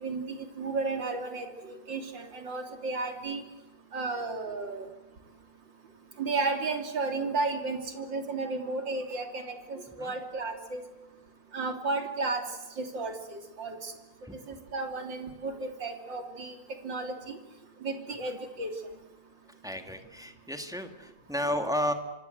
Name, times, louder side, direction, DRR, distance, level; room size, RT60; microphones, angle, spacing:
voice 1, 0.0-3.4 3.9-4.9 6.2-10.8 11.5-12.4 12.8-13.9 14.5-16.6 16.8-17.4 17.8-18.7, right 3 dB, 85° right, 4 dB, 3.7 m, -33 dB
voice 2, 19.6-21.9, equal, ahead, 6 dB, 2.1 m, -33 dB
27.5 x 24.5 x 8.0 m, 1.0 s
omnidirectional pair, 1.9 m